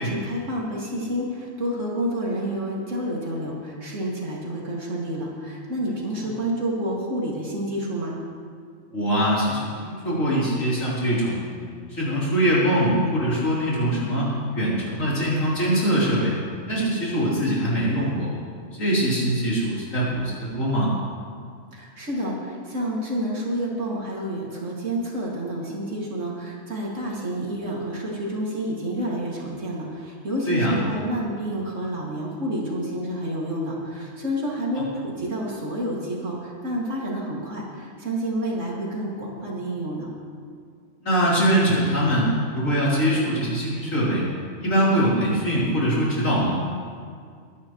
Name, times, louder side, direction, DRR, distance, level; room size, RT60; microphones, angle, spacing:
voice 1, 0.0-8.2 21.7-40.1, equal, 65° right, -4 dB, 2.8 m, -29 dB
voice 2, 8.9-11.5 11.9-16.4 16.7-18.3 18.7-20.9 30.5-30.7 41.0-44.2 44.6-46.6, equal, 70° left, -8 dB, 4.2 m, -22 dB
22.5 x 10.5 x 3.2 m, 2.1 s
omnidirectional pair, 1.4 m